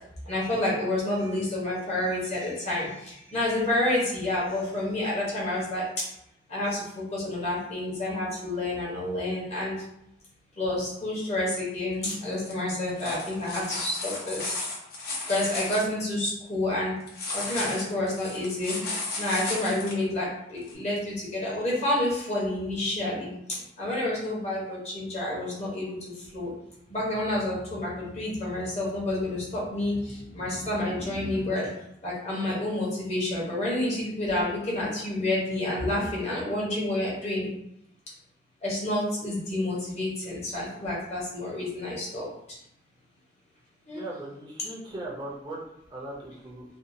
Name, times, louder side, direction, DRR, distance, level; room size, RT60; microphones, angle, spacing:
voice 1, 0.3-6.0 6.5-9.7 10.6-14.6 15.3-16.9 17.3-18.8 19.2-23.3 23.8-25.9 26.3-26.5 26.9-31.7 32.0-37.5 38.6-42.3 43.9-44.0, left 1 dB, 40° left, -5 dB, 0.9 m, -29 dB
sound 1, 12.3-12.5 12.9-15.8 17.1-19.9 20.7-20.8, left 2 dB, 60° left, 0.6 m, -34 dB
sound 2, 26.2-31.5, right 1 dB, 90° right, 0.8 m, -45 dB
voice 2, 43.9-45.6 45.9-46.6, right 1 dB, 25° right, -4 dB, 0.5 m, -38 dB
2.6 x 2.3 x 2.6 m, 0.79 s
head